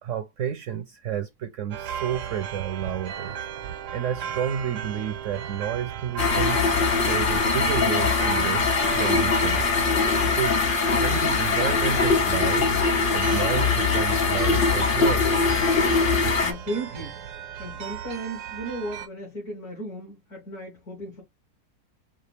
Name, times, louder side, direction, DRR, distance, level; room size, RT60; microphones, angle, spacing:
voice 1, 0.0-3.4 3.9-6.6 7.1-9.7 10.2-10.6 10.8-12.7 13.1-15.3, right 9 dB, 70° right, 0.7 m, -30 dB
sound 1, 1.7-19.1, right 8 dB, 90° right, 1.4 m, -36 dB
sound 2, 6.2-16.5, left 4 dB, 50° left, 0.7 m, -22 dB
voice 2, 15.9-17.2 17.6-21.2, right 1 dB, 75° left, 2.5 m, -35 dB
4.9 x 2.7 x 3.3 m
omnidirectional pair, 1.7 m